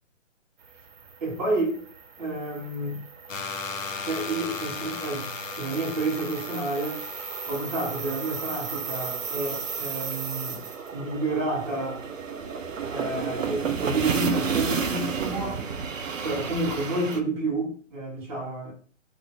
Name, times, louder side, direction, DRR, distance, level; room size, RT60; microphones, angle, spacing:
sound 1, 0.7-17.2, right 6 dB, 80° right, 0.6 m, -33 dB
voice 1, 1.2-1.7 2.2-3.0 4.0-5.3 5.5-7.0 7.5-10.6 10.9-12.0 12.9-15.6 16.2-18.7, right 2 dB, 30° right, 1.2 m, -30 dB
sound 2, 3.3-10.1, left 5 dB, 90° left, 0.5 m, -38 dB
2.5 x 2.0 x 3.5 m
figure-of-eight pair, 135°, 38 cm